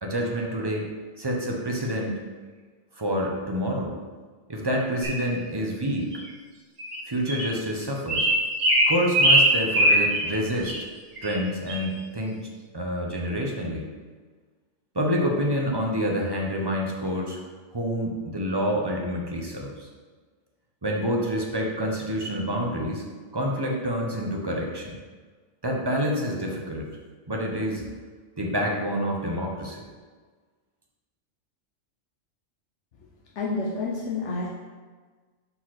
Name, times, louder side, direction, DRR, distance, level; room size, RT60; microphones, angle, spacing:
voice 1, 0.0-0.9 1.2-2.2 3.0-3.9 4.5-6.1 7.1-8.3 8.9-10.7 11.2-12.5 12.7-13.9 14.9-17.4 17.7-19.9 20.8-23.0 23.3-25.0 25.6-27.0 27.3-28.0 28.4-29.9, equal, 25° right, -1 dB, 0.7 m, -27 dB
sound 1, 5.0-5.2 6.1-6.2 6.8-7.0 7.3-7.5 8.1-10.3 10.6-10.8 11.2-11.4 11.7-11.8, right 1 dB, 65° right, 1.4 m, -21 dB
voice 2, 33.4-34.5, left 3 dB, 70° left, -2 dB, 1.0 m, -29 dB
4.9 x 4.2 x 5.8 m, 1.4 s
omnidirectional pair, 1.3 m